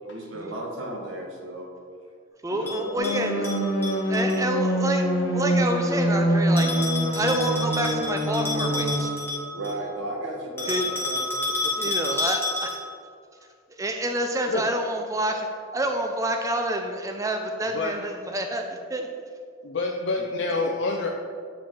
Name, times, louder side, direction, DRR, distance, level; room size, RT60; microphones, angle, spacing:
voice 1, 0.0-1.7 2.6-3.5 7.2-7.6 9.5-11.4, right 1 dB, 60° right, 0 dB, 1.3 m, -35 dB
voice 2, 2.4-3.5 4.1-6.7 7.1-9.1 10.7-10.9 11.8-12.8 13.8-19.1, right 1 dB, 15° right, 4 dB, 0.4 m, -28 dB
Bell, 2.7-4.4 6.6-9.8 10.6-13.0, left 2 dB, 10° left, 1.5 m, -30 dB
sound 1, 3.0-9.0, equal, 85° left, 1.5 m, -25 dB
voice 3, 3.9-4.3 11.6-11.9 14.5-14.6 17.7-17.9 19.6-21.1, left 3 dB, 60° left, 1 dB, 0.5 m, -28 dB
8.6 x 5.1 x 3.7 m, 2.2 s
head